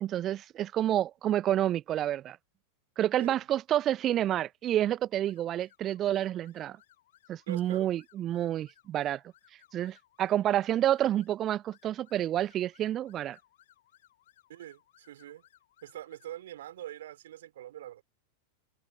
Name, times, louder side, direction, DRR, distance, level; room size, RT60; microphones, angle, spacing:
voice 1, 0.0-2.4 3.0-6.8 7.3-9.2 9.7-13.4, right 12 dB, 30° right, 0.7 m, -29 dB
sound 1, 5.2-16.5, left 14 dB, 55° left, 7.6 m, -64 dB
voice 2, 7.5-7.9 14.5-15.4 15.8-18.0, right 12 dB, 60° right, 4.6 m, -44 dB
figure-of-eight pair, 90°, 0 cm